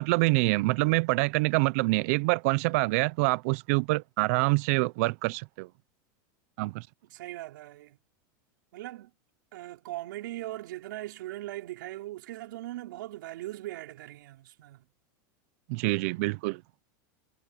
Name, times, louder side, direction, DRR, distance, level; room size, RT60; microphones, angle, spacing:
voice 1, 0.0-5.7 6.6-6.9 15.7-16.6, right 24 dB, 45° right, 0.5 m, -26 dB
voice 2, 7.1-8.0 8.7-9.1 9.5-14.8, right 16 dB, 75° right, 5.2 m, -40 dB
supercardioid pair, 170°, 11 cm